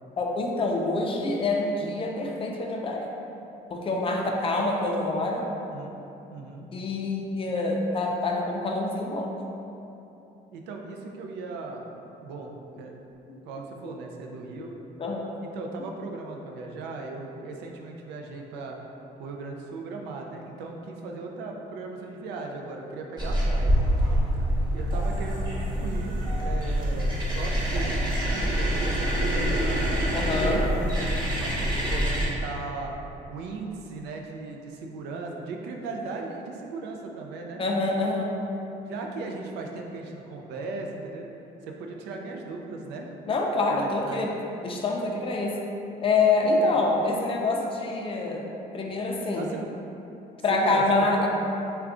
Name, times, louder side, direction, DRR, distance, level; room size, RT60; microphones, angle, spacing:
voice 1, 0.2-3.1 3.7-5.5 6.7-9.3 13.8-13.9 15.0-15.3 30.1-30.6 37.6-38.4 43.3-44.3 44.6-45.6 46.0-48.5 48.7-49.5 50.4-51.3, left 3 dB, 30° left, 0 dB, 0.5 m, -26 dB
voice 2, 5.7-6.0 6.3-6.7 10.5-11.8 12.2-12.5 12.8-13.0 13.5-14.8 15.4-18.8 19.2-23.8 24.7-32.9 33.3-37.6 38.9-41.3 41.6-43.1 43.7-44.3 46.4-46.8 49.4-49.6 50.5-51.3, right 3 dB, 85° right, 1 dB, 0.4 m, -37 dB
sound 1, 23.2-32.3, equal, 25° right, 1.0 m, -25 dB
3.5 x 2.2 x 3.7 m, 2.9 s
cardioid pair, 110°, 17 cm